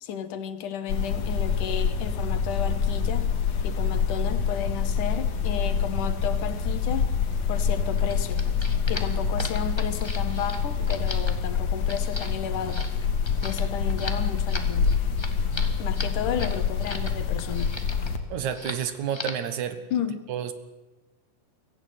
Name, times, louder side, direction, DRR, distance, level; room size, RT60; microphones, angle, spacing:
voice 1, 0.0-3.3 3.6-7.1 7.5-12.9 13.4-14.9 15.8-17.8 19.9-20.3, left 8 dB, 85° left, 10 dB, 2.9 m, -33 dB
sound 1, 0.9-18.2, left 6 dB, 60° left, 2.7 m, -26 dB
sound 2, 8.0-17.1 17.4-18.1 18.5-18.8 19.1-19.5, left 2 dB, 15° left, 1.0 m, -38 dB
voice 2, 18.3-19.8 20.3-20.5, right 9 dB, 70° right, 11 dB, 2.7 m, -30 dB
23.0 x 15.0 x 9.5 m, 1.1 s
omnidirectional pair, 3.5 m